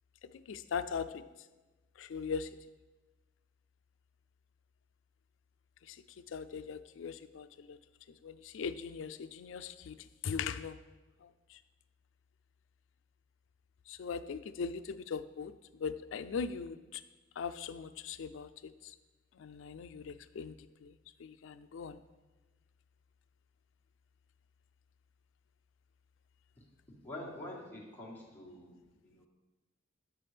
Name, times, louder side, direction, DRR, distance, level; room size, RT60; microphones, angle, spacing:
voice 1, 0.5-1.1 2.0-2.5 5.9-6.0 6.3-7.8 8.2-10.0 10.2-10.8 11.2-11.6 13.9-15.5 15.8-17.0 17.4-18.5 19.4-20.6 20.8-22.0, left 6 dB, 75° left, 12 dB, 0.4 m, -40 dB
voice 2, 27.0-28.8 29.0-29.3, left 1 dB, 10° left, -6 dB, 1.6 m, -46 dB
8.3 x 6.0 x 3.3 m, 1.2 s
head